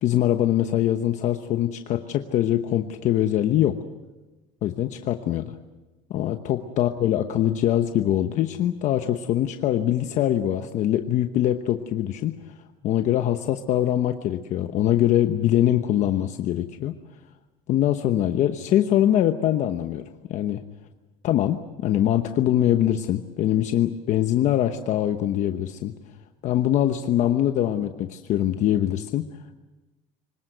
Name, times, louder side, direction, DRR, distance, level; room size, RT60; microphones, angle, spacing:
voice 1, 0.0-3.8 4.6-5.5 6.1-12.4 12.8-16.9 17.7-20.0 20.3-20.6 21.2-25.9 26.4-29.3, left 12 dB, 50° left, 7 dB, 1.0 m, -23 dB
25.5 x 19.0 x 8.0 m, 1.1 s
cardioid pair, 160°, 16 cm